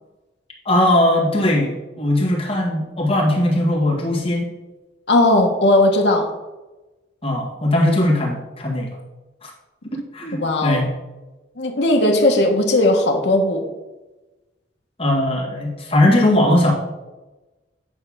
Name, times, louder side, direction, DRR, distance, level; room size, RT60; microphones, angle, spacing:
voice 1, 0.6-4.5 7.2-8.9 9.4-9.5 10.1-10.9 15.0-16.7, left 1 dB, 30° left, -3 dB, 1.8 m, -19 dB
voice 2, 5.1-6.3 10.3-10.9 11.6-13.7, left 1 dB, 65° left, 2 dB, 1.1 m, -17 dB
9.2 x 3.3 x 6.1 m, 1.1 s
head